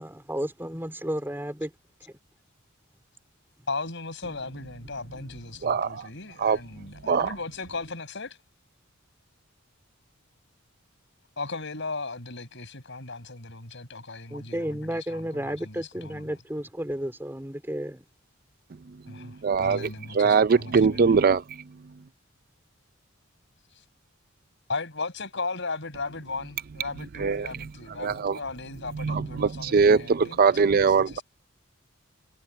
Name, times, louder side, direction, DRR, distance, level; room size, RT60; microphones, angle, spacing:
voice 1, 0.0-1.7 14.3-18.0, equal, 10° right, 4.0 m, -32 dB
voice 2, 3.7-8.4 11.4-16.3 19.1-21.1 23.7-23.8 24.7-31.2, left 3 dB, 60° left, 6.8 m, -37 dB
voice 3, 5.6-6.1 6.4-6.6 7.0-7.3 19.1-19.9 20.1-21.6 27.2-27.7 28.0-28.4 28.9-31.2, right 5 dB, 45° right, 0.4 m, -22 dB
head